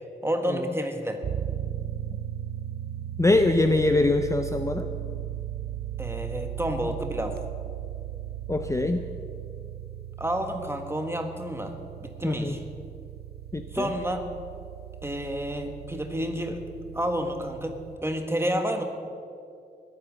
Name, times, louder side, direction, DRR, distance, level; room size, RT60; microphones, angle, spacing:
voice 1, 0.2-1.2 6.0-7.4 10.2-11.7 12.0-12.6 13.7-14.2 15.0-16.6 16.9-18.8, equal, 15° right, 5 dB, 1.5 m, -30 dB
sound 1, 1.2-18.0, right 11 dB, 70° right, 0.5 m, -37 dB
voice 2, 3.2-4.9 8.5-9.0 12.2-12.6 13.5-13.9, left 2 dB, 20° left, 7 dB, 0.6 m, -23 dB
20.5 x 9.0 x 6.4 m, 2.4 s
wide cardioid pair, 110°, 17 cm